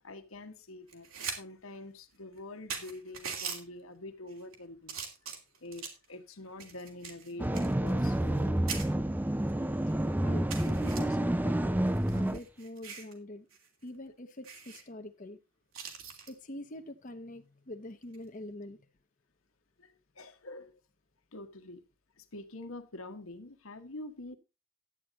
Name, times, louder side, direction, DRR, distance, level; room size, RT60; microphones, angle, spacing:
voice 1, 0.0-5.0 5.6-9.0 19.8-20.7 21.3-21.8 22.2-24.3, left 2 dB, 85° left, 1.4 m, -46 dB
sound 1, 0.9-1.4 1.7-1.8 2.4-2.5 2.7-3.6 4.3-4.5 4.9-6.0 6.6-8.4 8.7-8.9 9.5-9.6 9.9-10.0 10.5-11.0 11.9-13.1 13.5-13.7 13.9-14.0 14.4-14.8 15.7-16.3 18.0-18.3, right 6 dB, 85° right, 3.0 m, -41 dB
sound 2, 7.4-12.4, right 1 dB, 10° right, 0.4 m, -29 dB
voice 2, 10.2-11.8 12.1-13.5 13.8-15.4 16.3-18.8, left 1 dB, 40° left, 0.9 m, -45 dB
11.5 x 9.1 x 3.9 m
head